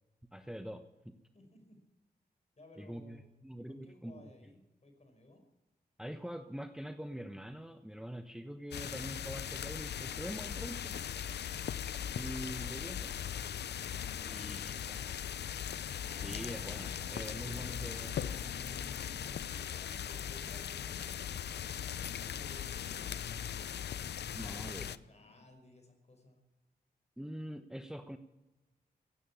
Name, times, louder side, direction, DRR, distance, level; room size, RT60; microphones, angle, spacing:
voice 1, 0.3-1.1 2.8-4.2 6.0-11.0 12.1-13.1 14.2-15.1 16.2-18.4 24.3-25.0 27.2-28.2, equal, 5° right, 8 dB, 1.2 m, -44 dB
voice 2, 1.3-1.8 2.5-3.2 3.6-5.4 14.0-15.3 19.5-23.8 24.3-26.4, left 2 dB, 40° left, 5 dB, 5.6 m, -59 dB
sound 1, 8.7-25.0, left 9 dB, 80° left, 0.6 m, -39 dB
sound 2, 16.1-25.5, left 1 dB, 65° left, 2.8 m, -54 dB
16.5 x 9.2 x 8.7 m, 1.0 s
cardioid pair, 55°, 17 cm